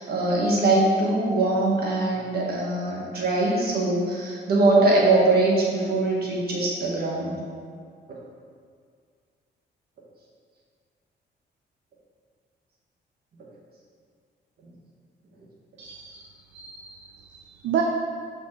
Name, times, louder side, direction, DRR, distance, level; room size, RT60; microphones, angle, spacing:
voice 1, 0.0-7.4, right 2 dB, 60° right, -3 dB, 1.4 m, -22 dB
voice 2, 15.8-16.3 16.5-17.8, right 9 dB, 90° right, 1 dB, 0.5 m, -31 dB
6.5 x 5.0 x 3.2 m, 2.1 s
cardioid pair, 105°, 18 cm